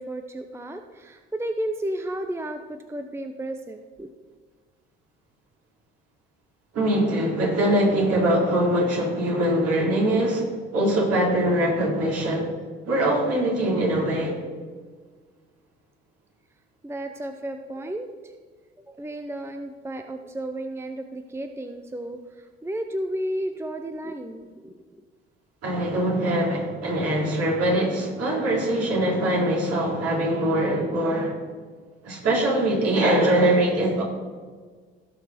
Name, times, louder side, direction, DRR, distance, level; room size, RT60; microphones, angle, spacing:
voice 1, 0.0-4.1 16.8-18.1 18.9-22.2 22.6-24.7, right 1 dB, 10° right, 7 dB, 0.7 m, -32 dB
voice 2, 6.7-10.5 10.7-12.5 12.9-14.4 25.6-31.4 32.0-34.0, right 1 dB, 55° right, -3 dB, 3.8 m, -22 dB
17.0 x 6.2 x 4.3 m, 1.5 s
hypercardioid pair, 55°, 30 cm